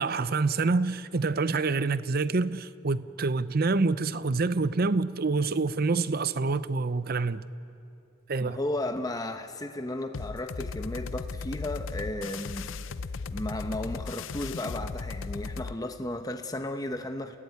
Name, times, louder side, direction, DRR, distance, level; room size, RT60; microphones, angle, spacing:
voice 1, 0.0-7.4 8.3-8.6, right 3 dB, 45° right, 0.6 m, -27 dB
voice 2, 8.4-12.7 13.3-17.4, left 1 dB, 15° left, 0.8 m, -34 dB
sound 1, 10.1-15.8, left 4 dB, 65° left, 0.6 m, -36 dB
30.0 x 16.0 x 9.7 m
head